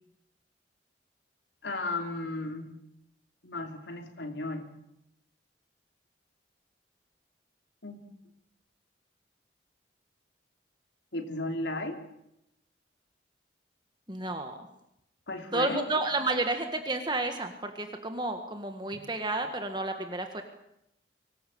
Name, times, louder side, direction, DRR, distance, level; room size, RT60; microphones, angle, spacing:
voice 1, 1.6-2.8 3.4-4.7 7.8-8.0 11.1-12.0 15.3-15.8 18.9-19.0, left 2 dB, 75° left, 5 dB, 3.1 m, -35 dB
voice 2, 14.1-14.6 15.5-20.4, right 2 dB, 25° right, 6 dB, 1.7 m, -31 dB
24.0 x 18.5 x 8.6 m, 0.80 s
head